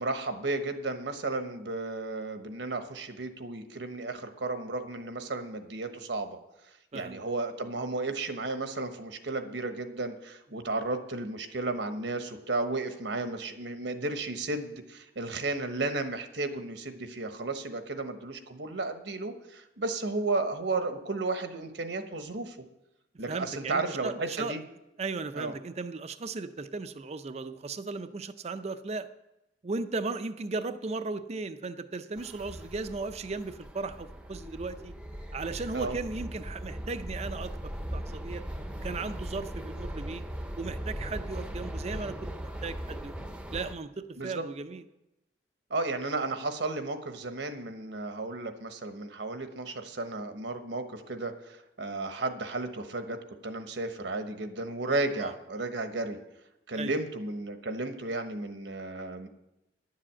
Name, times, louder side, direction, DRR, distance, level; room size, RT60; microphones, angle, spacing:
voice 1, 0.0-6.4 6.9-22.6 23.2-24.6 25.3-25.5 35.7-36.0 44.2-44.5 45.7-56.2 56.7-59.3, right 2 dB, 75° right, 7 dB, 1.1 m, -33 dB
voice 2, 23.3-24.5 25.0-29.1 29.6-34.9 35.3-38.4 38.8-40.2 40.6-43.1 43.5-44.8 55.2-55.3 56.7-57.0, right 3 dB, 35° right, 10 dB, 0.5 m, -36 dB
sound 1, 32.2-43.7, equal, 5° right, 0.7 m, -39 dB
10.5 x 7.6 x 7.5 m, 0.89 s
head